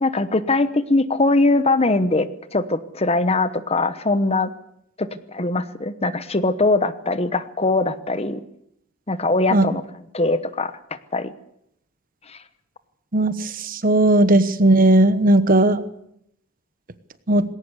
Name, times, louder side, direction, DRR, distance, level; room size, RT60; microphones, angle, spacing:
voice 1, 0.0-4.5 5.0-8.4 9.1-9.8 10.1-10.7 11.1-11.3 12.3-12.4, left 2 dB, 30° left, 13 dB, 1.0 m, -21 dB
voice 2, 13.1-15.8 17.3-17.4, right 1 dB, 40° right, 13 dB, 1.2 m, -16 dB
20.0 x 17.5 x 8.2 m, 0.75 s
head